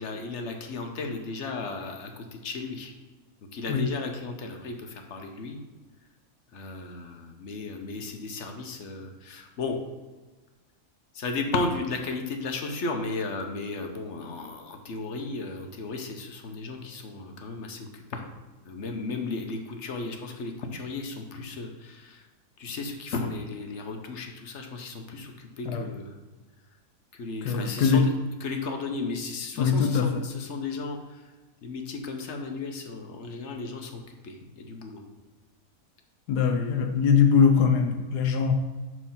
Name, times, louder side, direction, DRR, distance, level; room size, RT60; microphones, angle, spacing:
voice 1, 0.0-2.9 3.5-5.6 6.5-9.8 11.1-18.2 18.6-22.2 22.6-26.2 27.1-28.1 28.4-31.2 31.6-35.0, left 3 dB, 55° left, 4 dB, 1.0 m, -34 dB
voice 2, 27.4-28.0 29.6-30.1 36.3-38.5, left 6 dB, 80° left, 5 dB, 1.2 m, -22 dB
5.4 x 4.6 x 5.7 m, 1.2 s
omnidirectional pair, 1.7 m